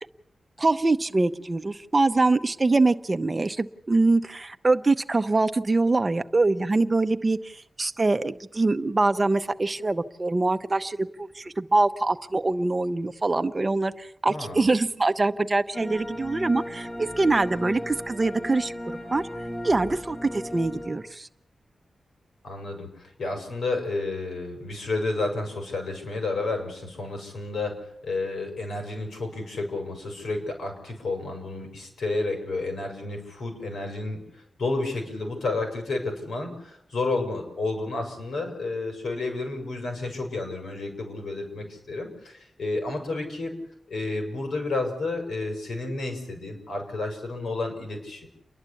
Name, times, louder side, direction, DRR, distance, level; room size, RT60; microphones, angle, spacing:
voice 1, 0.6-19.2 19.6-21.3, right 3 dB, 25° right, 9 dB, 0.8 m, -24 dB
voice 2, 14.3-14.7 22.4-43.5 43.9-48.3, left 2 dB, 80° left, 4 dB, 5.9 m, -31 dB
sound 1, 15.7-21.0, equal, 25° left, 3.8 m, -36 dB
29.5 x 11.0 x 8.5 m, 0.76 s
wide cardioid pair, 145°, 0 cm